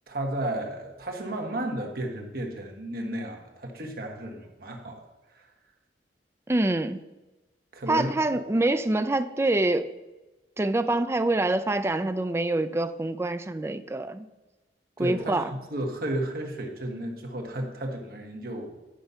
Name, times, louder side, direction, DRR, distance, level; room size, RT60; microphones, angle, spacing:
voice 1, 0.1-5.0 5.3-5.5 7.7-8.4 15.0-18.7, right 1 dB, 55° right, 2 dB, 1.5 m, -33 dB
voice 2, 6.5-7.0 7.9-9.9 10.6-14.3 15.0-15.5, right 2 dB, 15° right, 11 dB, 0.4 m, -25 dB
10.0 x 5.4 x 5.6 m, 1.1 s
head